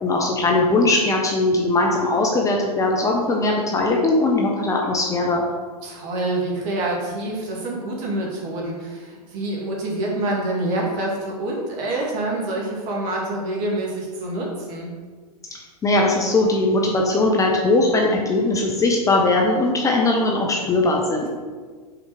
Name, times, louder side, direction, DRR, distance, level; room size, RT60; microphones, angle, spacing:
voice 1, 0.0-5.4 15.5-21.3, left 2 dB, 15° left, 0 dB, 0.7 m, -20 dB
voice 2, 5.8-14.9, right 1 dB, 40° right, -2 dB, 2.0 m, -26 dB
5.8 x 4.5 x 4.9 m, 1.5 s
figure-of-eight pair, 105°, 21 cm